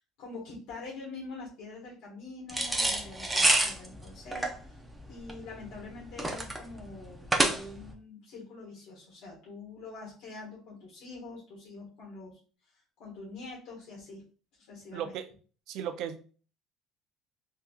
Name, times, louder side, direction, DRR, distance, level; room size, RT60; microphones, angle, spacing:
voice 1, 0.2-4.8 5.1-12.4 13.0-14.2 14.7-15.1, left 3 dB, 70° left, -5 dB, 1.5 m, -45 dB
sound 1, 2.5-7.9, right 1 dB, 5° right, 0.5 m, -28 dB
voice 2, 14.9-15.3 15.7-16.2, right 9 dB, 65° right, 10 dB, 0.4 m, -35 dB
3.6 x 2.7 x 2.3 m, 0.39 s
cardioid pair, 140°, 0 cm